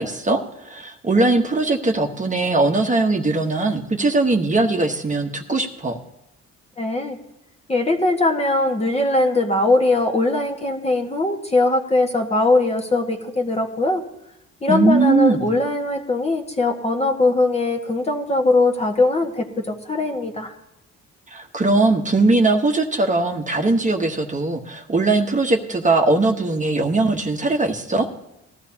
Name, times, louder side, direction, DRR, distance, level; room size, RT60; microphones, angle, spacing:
voice 1, 0.0-6.0 14.7-15.5 21.3-28.1, right 2 dB, 25° right, 2 dB, 1.3 m, -20 dB
voice 2, 6.8-7.2 7.7-14.0 14.6-20.5, left 2 dB, 20° left, 2 dB, 1.6 m, -20 dB
19.0 x 13.0 x 2.9 m, 0.85 s
cardioid pair, 90°, 30 cm